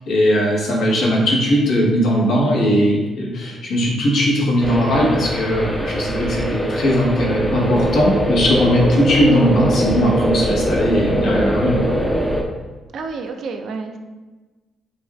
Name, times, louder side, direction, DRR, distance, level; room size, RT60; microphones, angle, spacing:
voice 1, 0.1-11.8, equal, 75° left, -3 dB, 1.0 m, -18 dB
sound 1, 4.6-12.4, equal, 5° left, 0.5 m, -22 dB
voice 2, 11.2-11.6 12.9-14.0, right 4 dB, 60° right, 6 dB, 0.4 m, -29 dB
5.1 x 2.3 x 2.2 m, 1.3 s
cardioid pair, 90°, 0 cm